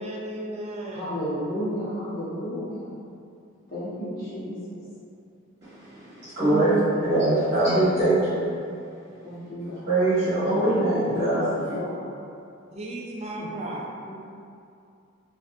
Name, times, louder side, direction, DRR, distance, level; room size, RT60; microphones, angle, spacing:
voice 1, 0.0-1.1 12.7-13.8, right 1 dB, 30° right, -3 dB, 0.4 m, -35 dB
voice 2, 0.9-2.9 3.7-4.8 6.4-6.7 7.2-7.3 9.2-9.9 11.0-12.1 13.3-13.5 14.0-14.3, equal, 45° left, -12 dB, 1.4 m, -32 dB
voice 3, 5.6-6.7 7.1-8.5 9.6-11.5, right 1 dB, 50° right, -13 dB, 1.0 m, -23 dB
4.5 x 2.6 x 2.4 m, 2.5 s
head